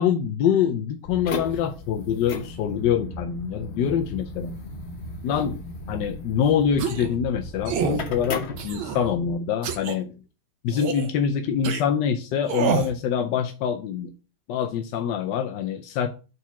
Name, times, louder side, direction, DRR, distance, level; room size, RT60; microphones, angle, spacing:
voice 1, 0.0-4.5 5.2-5.6 5.9-10.1 10.6-14.1 14.5-16.1, left 8 dB, 70° left, 1.1 m, -25 dB
sound 1, 1.0-9.3, left 2 dB, 50° left, 0.8 m, -36 dB
sound 2, 6.8-7.1 7.7-8.0 8.6-9.1 9.6-10.0 10.7-11.1 11.6-11.8 12.5-12.9, right 7 dB, 75° right, 1.6 m, -27 dB
4.8 x 4.5 x 5.6 m
omnidirectional pair, 2.3 m